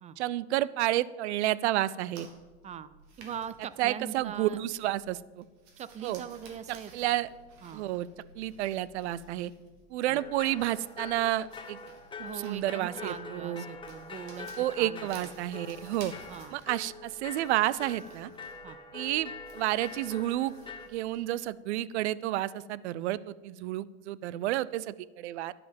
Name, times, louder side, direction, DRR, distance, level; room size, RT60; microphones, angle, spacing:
voice 1, 0.2-2.3 3.8-5.4 6.0-6.2 6.9-7.3 7.7-8.1 8.3-9.5 9.9-11.8 12.2-13.6 14.6-16.1 16.5-18.3 18.9-20.5 20.9-25.5, right 15 dB, 80° right, 20 dB, 0.6 m, -30 dB
sound 1, 2.1-21.3, right 3 dB, 55° right, 3.0 m, -55 dB
voice 2, 3.2-4.6 5.8-6.9 7.6-7.8 10.1-10.2 12.2-15.3 16.3-16.6 18.6-18.8, right 8 dB, 20° right, 15 dB, 0.4 m, -41 dB
sound 2, 10.2-20.9, left 4 dB, 15° left, 1.1 m, -45 dB
10.5 x 9.5 x 5.2 m, 1.3 s
supercardioid pair, 120°, 33 cm